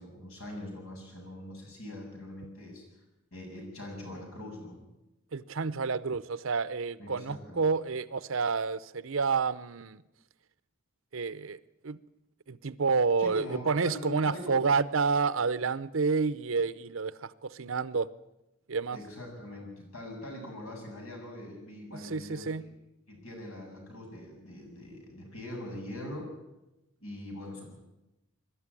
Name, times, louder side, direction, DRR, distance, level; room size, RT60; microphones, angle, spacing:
voice 1, 0.0-2.8 3.3-4.8 7.0-7.7 13.2-14.7 18.9-22.7 23.1-26.3 27.0-27.8, left 1 dB, 85° left, 7.7 m, -42 dB
voice 2, 5.3-10.0 11.1-12.0 12.5-18.1 18.7-19.0 21.9-22.6, right 4 dB, 70° right, 0.7 m, -29 dB
22.0 x 12.5 x 9.8 m
head